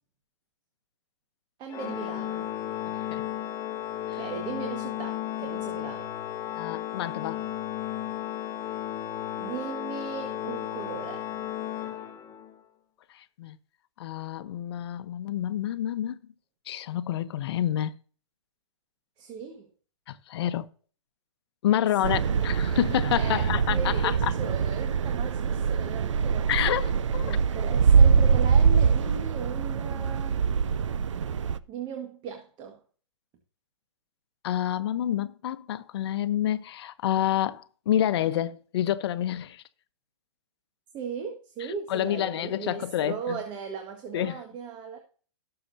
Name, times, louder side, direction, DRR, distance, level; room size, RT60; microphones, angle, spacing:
voice 1, 1.6-2.5 4.1-6.1 9.4-11.3 19.2-19.7 22.0-22.5 23.1-26.5 27.2-30.5 31.7-32.8 40.9-45.0, right 6 dB, 30° right, 1.6 m, -38 dB
Organ, 1.7-12.6, left 12 dB, 20° left, 1.2 m, -34 dB
voice 2, 2.9-3.2 4.1-4.2 6.6-7.4 13.1-13.6 14.0-16.2 16.7-17.9 20.1-20.7 21.6-24.3 26.5-27.4 34.4-39.6 41.9-43.4 44.1-44.4, left 11 dB, 55° left, 0.9 m, -28 dB
sound 1, 22.0-31.6, right 6 dB, 75° right, 0.6 m, -23 dB
17.5 x 6.9 x 2.7 m
hypercardioid pair, 130°, 16 cm